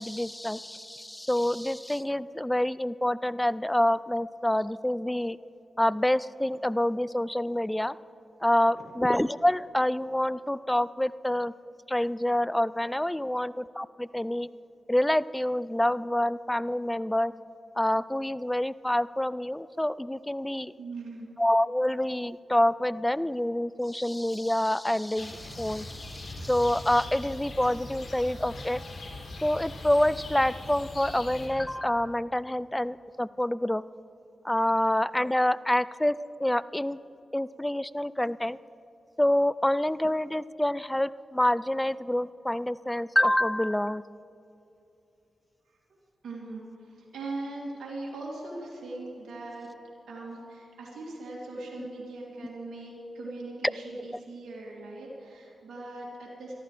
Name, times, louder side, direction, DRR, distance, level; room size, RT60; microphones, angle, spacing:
voice 1, 0.0-5.4 5.8-8.0 8.4-11.5 11.9-14.5 14.9-17.3 17.8-20.7 21.4-28.8 29.4-33.8 34.4-36.2 36.4-37.0 37.3-38.6 39.2-44.0 51.8-51.9, left 1 dB, 10° left, 18 dB, 0.4 m, -27 dB
voice 2, 20.8-21.3 45.7-46.0 46.2-49.7 50.1-56.5, right 2 dB, 85° right, -5 dB, 2.8 m, -40 dB
sound 1, 25.1-31.5, left 2 dB, 70° left, 4.0 m, -41 dB
21.5 x 14.0 x 3.4 m, 2.8 s
cardioid pair, 45°, 0 cm